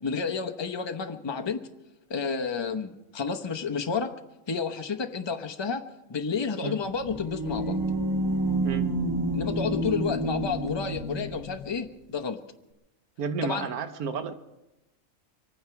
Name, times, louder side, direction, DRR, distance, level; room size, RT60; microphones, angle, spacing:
voice 1, 0.0-1.6 2.1-4.1 4.5-5.8 6.1-7.8 9.3-12.4 13.4-13.7, left 5 dB, 25° left, 6 dB, 0.8 m, -30 dB
sound 1, 6.8-11.7, right 1 dB, 15° right, 1.1 m, -29 dB
voice 2, 13.2-14.3, right 5 dB, 85° right, 8 dB, 1.4 m, -31 dB
24.5 x 9.3 x 5.8 m, 0.96 s
omnidirectional pair, 1.5 m